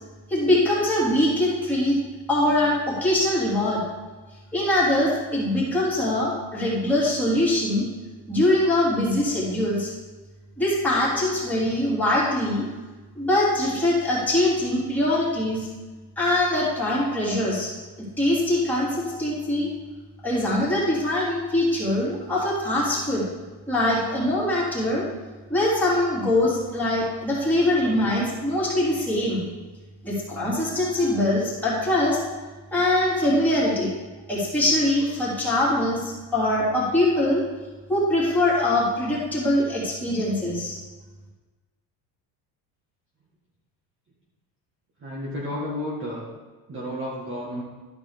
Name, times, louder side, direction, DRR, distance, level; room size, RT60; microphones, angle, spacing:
voice 1, 0.3-2.0 2.3-3.8 4.5-7.9 8.3-9.9 10.6-12.7 13.1-15.7 16.2-17.7 18.2-19.7 20.2-23.2 23.7-25.0 25.5-29.4 30.0-32.2 32.7-33.9 34.3-37.4 37.9-40.8, left 1 dB, 5° left, -8 dB, 3.4 m, -23 dB
voice 2, 45.0-46.3 46.7-47.6, left 1 dB, 25° right, -5 dB, 1.9 m, -31 dB
12.5 x 5.2 x 5.1 m, 1.3 s
cardioid pair, 150°, 44 cm